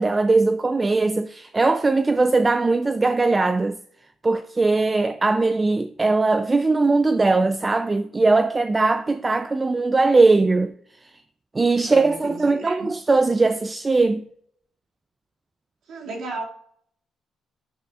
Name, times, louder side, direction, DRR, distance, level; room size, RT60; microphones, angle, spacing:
voice 1, 0.0-3.8 4.2-10.7 11.5-14.2, right 3 dB, 25° right, 0.3 m, -20 dB
voice 2, 11.8-12.9 15.9-16.4, right 3 dB, 75° right, 2.1 m, -33 dB
10.5 x 9.7 x 2.4 m
cardioid pair, 90°, 0 cm